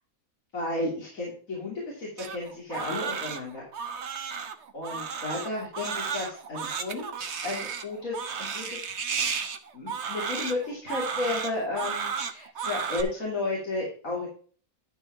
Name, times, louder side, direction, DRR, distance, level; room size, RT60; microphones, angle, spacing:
voice 1, 0.5-3.6 4.7-7.1 7.4-8.8 9.7-14.3, left 2 dB, 65° left, -5 dB, 3.6 m, -33 dB
Crying sobbing, 2.2-13.0, right 6 dB, 55° right, 1.3 m, -33 dB
12.0 x 5.0 x 4.7 m, 0.43 s
omnidirectional pair, 1.5 m